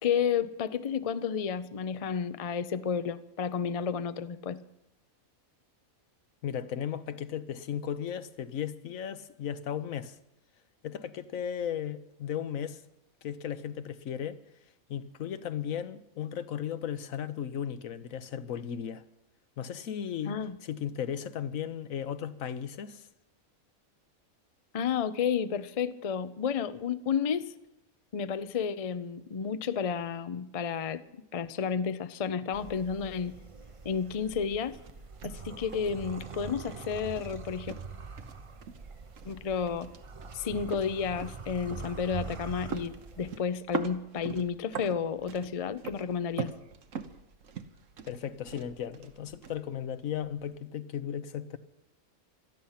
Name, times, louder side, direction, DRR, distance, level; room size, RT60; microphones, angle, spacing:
voice 1, 0.0-4.6 20.2-20.6 24.7-27.5 28.1-31.0 31.3-33.3 33.8-34.8 35.2-37.8 39.2-39.9 40.3-46.5, left 7 dB, 45° left, 0.4 m, -31 dB
voice 2, 6.4-10.2 10.8-12.8 13.2-14.4 14.9-19.0 19.6-23.1 48.1-51.6, left 9 dB, 75° left, 1.2 m, -36 dB
sound 1, 32.5-43.4, right 4 dB, 30° right, 0.7 m, -44 dB
sound 2, 33.6-50.6, right 6 dB, 65° right, 1.4 m, -44 dB
18.5 x 13.0 x 5.8 m
omnidirectional pair, 1.5 m